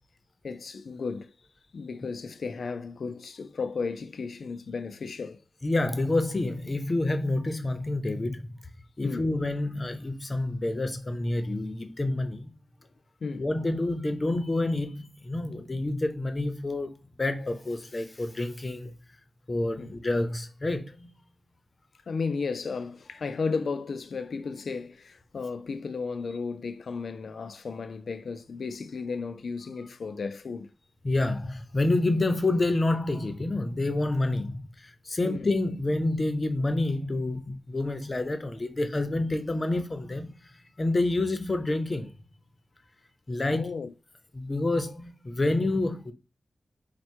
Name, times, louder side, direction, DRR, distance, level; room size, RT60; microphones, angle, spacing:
voice 1, 0.4-1.3 1.7-5.4 9.0-9.3 13.2-13.5 19.8-20.0 22.1-30.7 35.2-35.5 43.5-43.9, left 4 dB, 70° left, 0.4 m, -34 dB
voice 2, 5.6-8.6 9.0-12.5 13.3-16.9 17.2-18.9 19.5-21.1 31.0-40.3 40.8-42.1 43.3-43.7 44.3-46.1, left 2 dB, 35° left, 0.8 m, -28 dB
4.4 x 2.2 x 4.5 m
wide cardioid pair, 75°, 0 cm